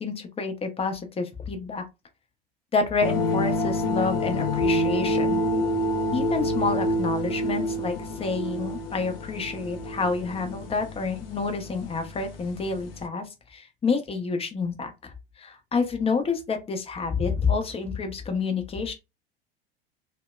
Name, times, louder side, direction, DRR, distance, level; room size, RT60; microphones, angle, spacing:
voice 1, 0.0-1.8 2.7-5.4 6.1-15.1 15.4-18.9, left 4 dB, 20° left, 0.6 m, -28 dB
sound 1, 3.0-13.1, left 1 dB, 70° left, 0.6 m, -28 dB
2.7 x 2.1 x 2.2 m
hypercardioid pair, 80°, 30 cm